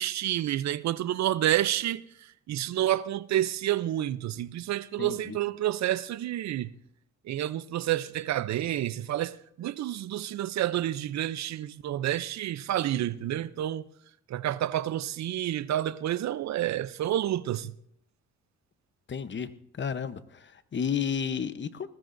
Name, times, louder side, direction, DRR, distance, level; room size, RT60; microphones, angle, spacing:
voice 1, 0.0-2.0 2.5-6.7 7.3-9.3 9.6-13.8 14.3-17.7, right 12 dB, 65° right, 0.6 m, -29 dB
voice 2, 5.0-5.4 19.1-19.5 19.8-21.9, left 7 dB, 40° left, 0.9 m, -32 dB
20.5 x 19.0 x 2.6 m
cardioid pair, 90°, 30 cm